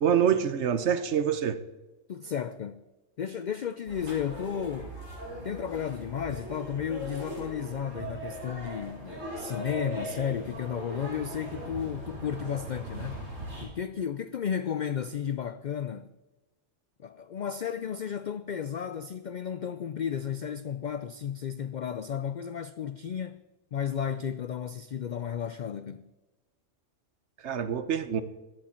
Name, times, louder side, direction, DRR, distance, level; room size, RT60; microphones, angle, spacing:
voice 1, 0.0-1.6 27.4-28.2, right 8 dB, 65° right, 1.1 m, -26 dB
voice 2, 2.1-2.9 3.2-5.0 5.4-13.2 13.6-16.1 17.0-23.4 23.7-26.1, left 8 dB, 70° left, 0.4 m, -33 dB
sound 1, 3.9-13.6, right 1 dB, 80° right, 5.0 m, -39 dB
15.5 x 11.0 x 4.4 m
omnidirectional pair, 1.3 m